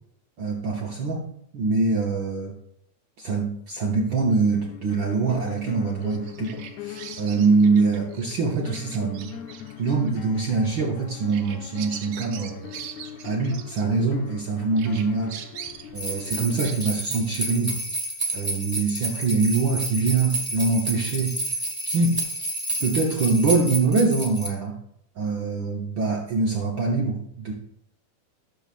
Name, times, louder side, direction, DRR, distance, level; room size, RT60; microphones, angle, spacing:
voice 1, 0.4-1.3 1.5-2.5 3.2-9.3 9.8-12.7 13.2-15.4 15.9-17.8 18.3-21.4 21.8-22.2 22.8-24.8 25.2-27.5, right 4 dB, 60° right, -2 dB, 1.2 m, -24 dB
sound 1, 4.5-16.8, left 9 dB, 80° left, 1.9 m, -41 dB
Bird vocalization bird call bird song, 6.0-14.4 14.8-16.9, right 9 dB, 85° right, 1.2 m, -42 dB
sound 2, 16.0-24.5, right 1 dB, 5° right, 1.1 m, -30 dB
14.0 x 6.9 x 2.5 m, 0.73 s
omnidirectional pair, 3.4 m